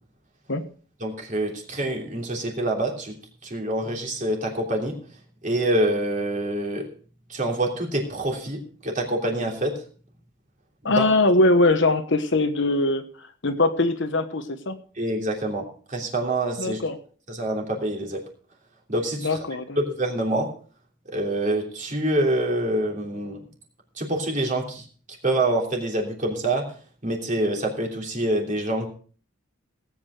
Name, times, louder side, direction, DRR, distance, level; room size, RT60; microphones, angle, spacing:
voice 1, 1.0-3.2 3.4-5.0 5.4-6.9 7.3-9.8 10.9-11.0 14.9-16.8 17.3-18.2 18.9-19.4 19.8-20.5 21.1-23.4 24.0-24.9 25.2-26.7 27.0-28.9, right 1 dB, 35° right, 0 dB, 3.1 m, -26 dB
voice 2, 10.8-13.0 13.4-14.8 16.6-17.0 19.2-19.8, left 2 dB, 55° left, 8 dB, 1.2 m, -21 dB
18.0 x 8.6 x 4.9 m, 0.43 s
head